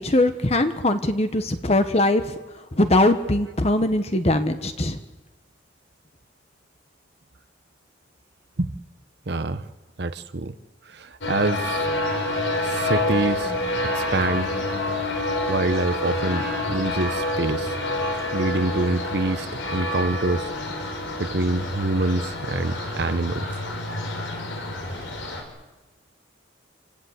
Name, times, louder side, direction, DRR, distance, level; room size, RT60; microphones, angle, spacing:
voice 1, 0.0-2.3 2.7-5.0, left 1 dB, 35° left, 8 dB, 1.1 m, -21 dB
voice 2, 9.3-9.7 10.0-10.5 10.8-11.9 12.6-13.6 13.9-14.5 15.5-17.8 18.3-20.5 21.2-23.6, right 2 dB, 55° right, 11 dB, 0.9 m, -26 dB
sound 1, 11.2-25.4, left 1 dB, 80° left, 4.7 m, -28 dB
27.0 x 17.5 x 8.1 m, 1.2 s
head